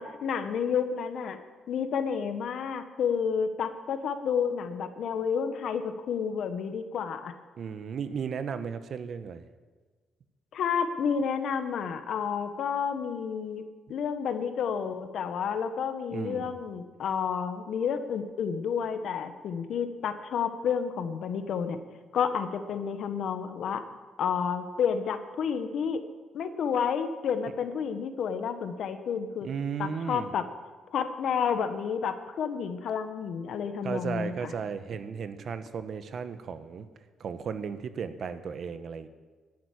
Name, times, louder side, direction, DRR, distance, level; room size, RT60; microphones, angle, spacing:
voice 1, 0.0-1.4 1.7-7.3 10.5-13.6 13.9-21.8 22.1-23.8 24.2-26.0 26.3-29.5 29.8-30.4 30.9-34.5, left 7 dB, 70° left, 9 dB, 1.3 m, -30 dB
voice 2, 7.6-9.4 16.1-16.5 29.4-30.3 33.8-36.9 37.2-39.1, right 6 dB, 60° right, 11 dB, 1.1 m, -35 dB
11.0 x 9.0 x 9.9 m, 1.4 s
cardioid pair, 90°, 0 cm